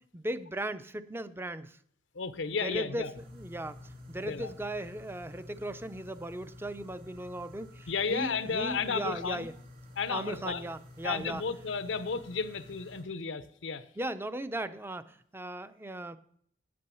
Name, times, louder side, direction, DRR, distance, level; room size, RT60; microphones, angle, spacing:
voice 1, 0.0-1.8 2.5-3.8 4.1-9.5 10.1-11.4 14.0-16.2, right 1 dB, 15° right, 13 dB, 0.5 m, -37 dB
voice 2, 2.1-3.1 4.2-4.5 7.9-9.5 10.0-10.7 11.0-13.8, left 5 dB, 85° left, 13 dB, 0.7 m, -33 dB
sound 1, 3.1-13.0, left 1 dB, 50° right, 3.0 m, -50 dB
8.6 x 8.4 x 6.9 m, 0.65 s
head